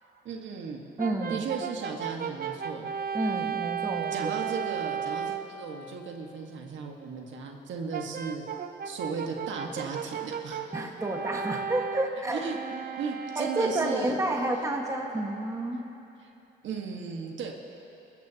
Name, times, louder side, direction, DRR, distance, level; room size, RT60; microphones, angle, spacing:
voice 1, 0.0-0.9 1.3-2.9 4.1-8.4 8.8-10.6 12.3-14.2 16.2-16.3 16.6-17.5, right 5 dB, 70° right, 1 dB, 1.6 m, -36 dB
voice 2, 1.0-1.5 3.1-4.4 10.7-12.4 13.4-15.8, right 1 dB, 15° right, 1 dB, 1.6 m, -30 dB
Brass instrument, 1.0-5.6 7.9-14.3, right 8 dB, 50° right, 0.8 m, -35 dB
29.0 x 14.5 x 2.9 m, 2.9 s
cardioid pair, 90°, 20 cm